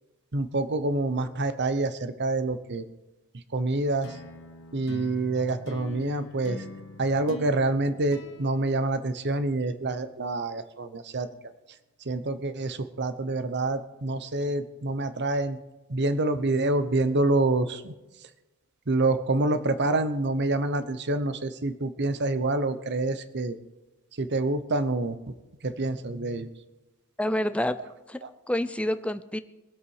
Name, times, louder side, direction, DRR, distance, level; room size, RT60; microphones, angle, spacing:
voice 1, 0.3-2.8 3.5-4.1 4.7-6.6 7.0-11.3 12.1-15.6 15.9-17.9 18.9-23.6 24.2-25.3 25.6-26.5, right 2 dB, 50° right, 12 dB, 0.9 m, -27 dB
sound 1, 4.0-9.6, left 2 dB, 60° left, 1.4 m, -43 dB
voice 2, 27.2-27.8 28.1-29.4, left 1 dB, 5° left, 11 dB, 0.5 m, -28 dB
22.0 x 8.2 x 4.9 m, 1.1 s
head